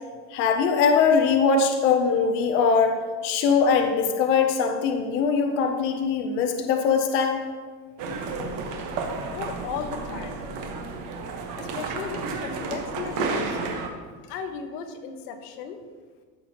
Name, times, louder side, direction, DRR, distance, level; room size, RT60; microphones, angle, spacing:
voice 1, 0.3-7.4, left 5 dB, 25° left, 4 dB, 0.4 m, -22 dB
sound 1, 8.0-13.9, right 4 dB, 40° right, 1.2 m, -32 dB
voice 2, 9.3-10.4 11.6-13.6 14.2-15.8, left 6 dB, 70° left, 6 dB, 1.2 m, -35 dB
13.5 x 6.7 x 2.8 m, 1.5 s
supercardioid pair, 165°, 49 cm